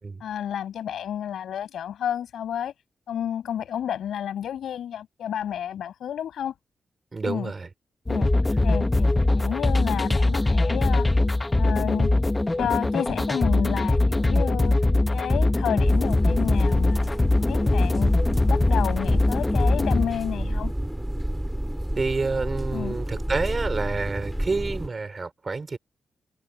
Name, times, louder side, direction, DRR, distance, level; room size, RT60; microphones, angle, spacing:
voice 1, 0.2-2.7 3.1-6.5 7.2-7.5 8.1-8.3 8.6-9.1 9.3-11.1 11.6-12.1 12.6-14.8 15.1-17.2 17.5-18.1 18.5-20.7 22.7-23.0, left 9 dB, 85° left, 6.3 m, -30 dB
voice 2, 7.1-7.7 22.0-25.8, right 4 dB, 40° right, 4.3 m, -28 dB
sound 1, 8.1-20.0, left 2 dB, 20° left, 1.2 m, -22 dB
sound 2, 15.8-24.9, right 1 dB, 5° right, 2.8 m, -30 dB
cardioid pair, 65°, 0 cm